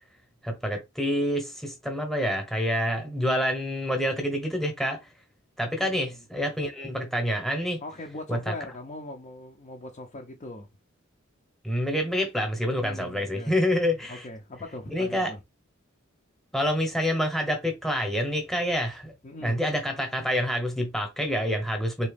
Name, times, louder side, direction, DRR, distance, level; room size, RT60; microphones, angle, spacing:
voice 1, 0.4-5.0 5.6-7.8 8.3-8.5 11.6-14.3 14.9-15.3 16.5-19.1 19.4-22.1, equal, ahead, 0.9 m, -27 dB
voice 2, 5.8-6.1 7.8-10.7 12.7-13.5 14.1-15.4 19.2-19.6, left 2 dB, 35° left, 0.5 m, -40 dB
3.9 x 2.8 x 3.4 m
head